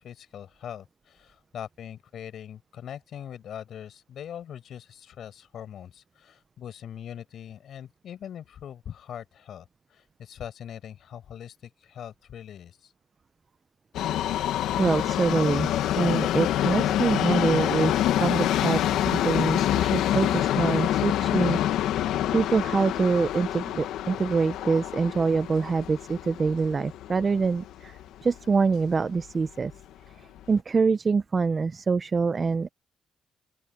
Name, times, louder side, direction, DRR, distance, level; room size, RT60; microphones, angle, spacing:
voice 1, 0.0-12.9, left 9 dB, 65° left, 7.2 m, -42 dB
Subway metro underground, 13.9-28.1 28.4-28.5 29.3-29.4 29.7-29.8 30.4-30.5, left 12 dB, 85° left, 1.5 m, -26 dB
voice 2, 14.8-15.7 16.0-17.9 18.2-21.6 22.3-29.7 30.5-32.7, right 4 dB, 35° right, 0.7 m, -25 dB
open air
cardioid pair, 90°, 0 cm